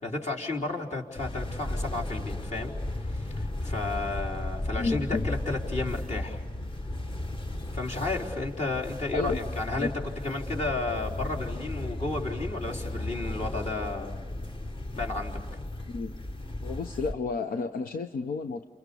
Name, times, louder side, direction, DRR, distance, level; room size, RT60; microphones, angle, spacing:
voice 1, 0.0-2.7 3.0-6.4 7.7-9.9 10.2-14.2 14.9-15.4, left 2 dB, 50° left, -1 dB, 4.1 m, -33 dB
sound 1, 1.2-17.1, left 1 dB, 35° left, 1.6 m, -35 dB
voice 2, 4.8-5.2 9.1-9.4 9.7-9.9 15.9-16.1 16.6-18.6, left 4 dB, 85° left, 6 dB, 0.9 m, -31 dB
29.5 x 28.5 x 7.1 m, 1.3 s
cardioid pair, 80°, 15 cm